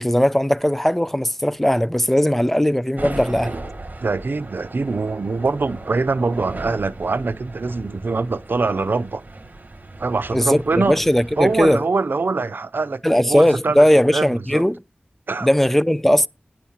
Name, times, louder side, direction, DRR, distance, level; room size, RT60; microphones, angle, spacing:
voice 1, 0.0-3.5 10.3-10.6 10.9-11.8 13.0-14.8 15.4-16.3, equal, 5° left, 0.5 m, -18 dB
sound 1, 3.0-11.8, right 2 dB, 50° right, 1.6 m, -37 dB
voice 2, 4.0-9.2 10.0-11.0 11.4-13.8 14.1-14.6 15.3-15.5, right 3 dB, 80° right, 0.5 m, -23 dB
10.0 x 4.3 x 7.2 m
wide cardioid pair, 40°, 3 cm